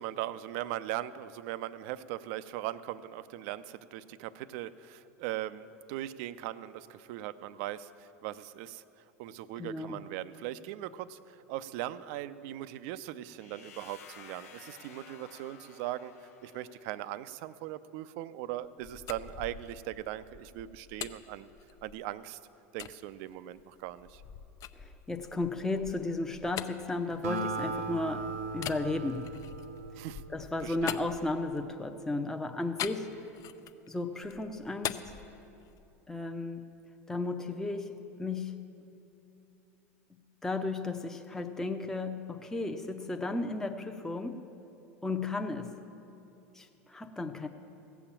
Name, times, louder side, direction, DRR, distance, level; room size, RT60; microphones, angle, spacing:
voice 1, 0.0-8.8 9.2-11.2 11.5-21.5 21.8-22.4 22.7-24.2 30.0-30.2 30.6-31.0, right 13 dB, 60° right, 15 dB, 0.5 m, -39 dB
voice 2, 9.6-10.0 24.8-29.3 30.3-33.1 33.9-35.1 36.1-36.6 37.1-38.5 40.4-44.5 45.0-45.8 46.5-47.5, left 2 dB, 5° left, 5 dB, 0.7 m, -34 dB
sound 1, 13.4-17.2, left 6 dB, 85° left, 1.2 m, -53 dB
sound 2, 18.6-22.2 22.8-23.0 23.5-28.0 28.5-31.8 32.8-33.9 34.2-36.0, left 10 dB, 45° left, 0.6 m, -43 dB
Acoustic guitar, 27.2-30.8, right 3 dB, 80° right, 0.9 m, -38 dB
16.5 x 7.1 x 7.3 m, 2.8 s
hypercardioid pair, 90°, 8 cm